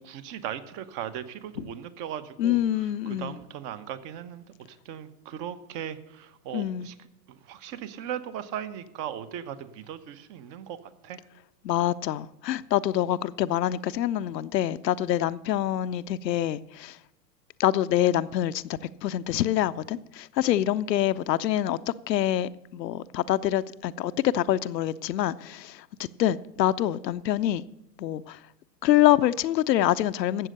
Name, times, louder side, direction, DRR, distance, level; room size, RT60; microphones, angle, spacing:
voice 1, 0.0-6.9 7.3-10.8 11.0-11.2, right 9 dB, 40° right, 1.1 m, -38 dB
voice 2, 2.4-3.4 6.5-6.9 11.6-17.0 17.6-18.6 19.0-21.8 22.1-25.8 26.2-27.7 28.0-28.4 28.8-30.5, left 12 dB, 80° left, 0.6 m, -25 dB
12.5 x 7.8 x 6.5 m
hypercardioid pair, 110°, 49 cm